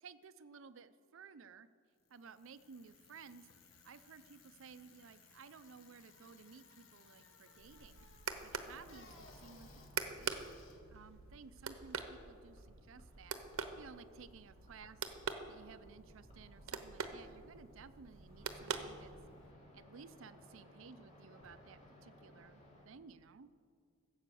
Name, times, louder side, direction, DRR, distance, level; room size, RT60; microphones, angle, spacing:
voice 1, 0.0-1.7 2.1-3.5 3.8-8.1 8.4-10.3 10.9-13.4 13.8-15.0 15.5-19.1 19.7-23.5, right 5 dB, 65° right, 13 dB, 0.5 m, -56 dB
Bicycle, 2.0-12.1, left 5 dB, 65° left, 1.3 m, -63 dB
sound 1, 7.6-19.5, right 5 dB, 85° right, 0.9 m, -45 dB
sound 2, 8.5-22.9, left 1 dB, 35° left, 2.6 m, -62 dB
15.0 x 8.0 x 6.9 m, 2.1 s
head